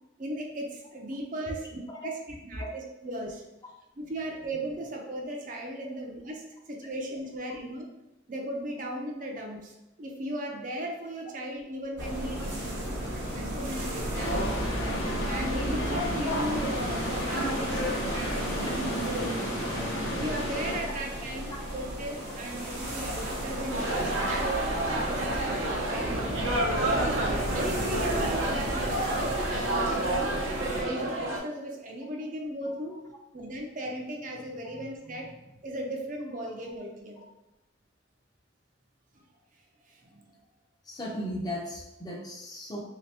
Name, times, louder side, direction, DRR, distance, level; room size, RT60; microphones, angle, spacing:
voice 1, 0.2-2.1 2.4-3.4 4.0-7.9 8.3-12.6 13.4-14.6 14.9-19.3 20.1-24.5 24.9-26.2 26.7-33.0 33.3-37.3 39.9-40.3, right 1 dB, 40° right, 1 dB, 0.5 m, -37 dB
voice 2, 12.0-12.9 18.7-18.8 19.6-19.7 20.8-20.9 40.8-42.8, equal, 20° left, -2 dB, 0.5 m, -38 dB
sound 1, 12.0-30.8, right 1 dB, 55° right, 1.0 m, -34 dB
sound 2, 14.1-20.8, equal, 80° left, 0.8 m, -32 dB
sound 3, 23.7-31.4, right 1 dB, 80° right, 0.7 m, -29 dB
3.2 x 2.8 x 3.3 m, 0.93 s
head